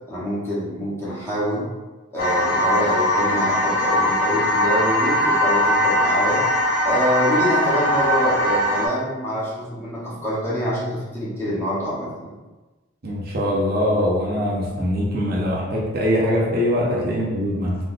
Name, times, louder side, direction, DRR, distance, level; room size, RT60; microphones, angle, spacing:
voice 1, 0.1-1.7 2.1-6.4 6.8-12.3, equal, 10° left, -8 dB, 0.7 m, -25 dB
sound 1, 2.2-8.9, left 1 dB, 45° left, 0.5 m, -20 dB
voice 2, 13.0-17.8, equal, 45° right, -4 dB, 0.6 m, -22 dB
3.6 x 2.8 x 2.4 m, 1.2 s
head